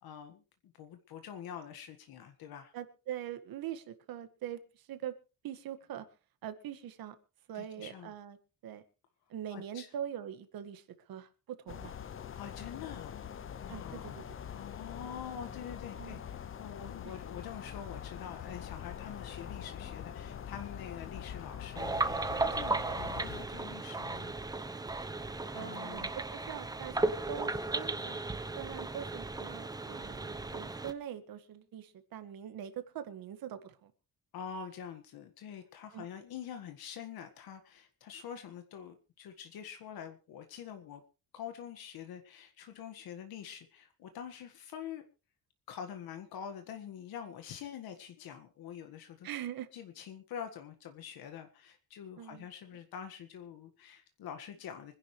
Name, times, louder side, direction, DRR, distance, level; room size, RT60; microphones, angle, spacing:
voice 1, 0.0-2.7 7.5-8.1 9.5-9.9 12.3-13.2 13.6-14.1 14.5-24.3 25.5-26.1 34.3-41.0 41.3-45.0 45.7-49.3 49.7-54.9, left 8 dB, 80° left, 6 dB, 1.8 m, -46 dB
voice 2, 2.7-5.2 5.4-6.1 6.4-7.2 7.5-8.4 8.6-8.8 9.3-11.9 13.7-14.2 16.0-16.2 17.0-17.1 25.5-28.2 28.6-33.9 35.9-36.1 49.2-49.7 52.2-52.5, right 10 dB, 70° right, 10 dB, 1.9 m, -43 dB
sound 1, 11.7-23.5, left 8 dB, 35° left, 0.8 m, -44 dB
sound 2, 21.8-30.9, right 3 dB, 10° right, 0.8 m, -35 dB
25.5 x 11.0 x 3.3 m, 0.33 s
cardioid pair, 165°, 36 cm